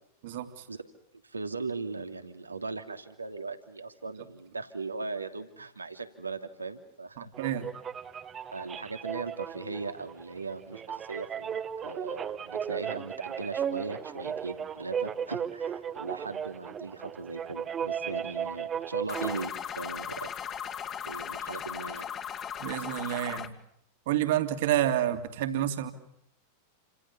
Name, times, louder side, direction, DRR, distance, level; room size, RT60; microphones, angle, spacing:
voice 1, 0.2-0.7 7.2-7.7 22.6-23.5 24.1-25.9, right 12 dB, 55° right, 7 dB, 3.0 m, -29 dB
voice 2, 1.2-7.2 8.5-20.3 21.1-22.1, right 4 dB, 80° right, 6 dB, 2.8 m, -38 dB
sound 1, 7.3-19.4, right 8 dB, 25° right, 1.6 m, -36 dB
sound 2, 19.1-23.5, left 8 dB, 25° left, 2.4 m, -37 dB
30.0 x 27.0 x 7.2 m, 0.73 s
figure-of-eight pair, 90°, 0 cm